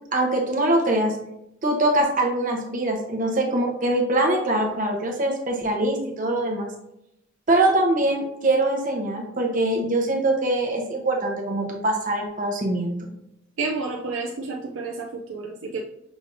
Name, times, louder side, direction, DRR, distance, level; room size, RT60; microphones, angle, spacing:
voice 1, 0.1-1.1 1.6-6.7 7.5-13.1, right 1 dB, 45° right, 2 dB, 0.8 m, -23 dB
voice 2, 13.6-15.8, right 3 dB, 85° right, -1 dB, 0.5 m, -30 dB
6.1 x 3.3 x 2.6 m, 0.81 s
head